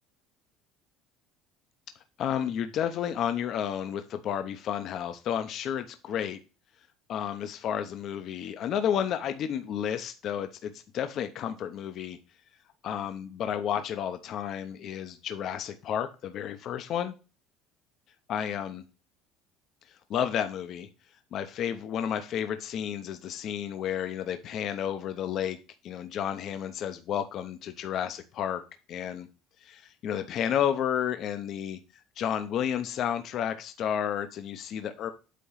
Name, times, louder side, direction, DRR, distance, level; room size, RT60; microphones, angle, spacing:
voice 1, 2.2-6.4 7.1-12.2 12.8-17.2 18.3-18.8 20.1-20.9 21.3-25.6 25.8-28.6 28.9-29.3 29.6-31.8 32.2-35.1, left 9 dB, 45° left, 9 dB, 0.7 m, -31 dB
8.3 x 3.0 x 5.6 m, 0.31 s
cardioid pair, 150°, 0 cm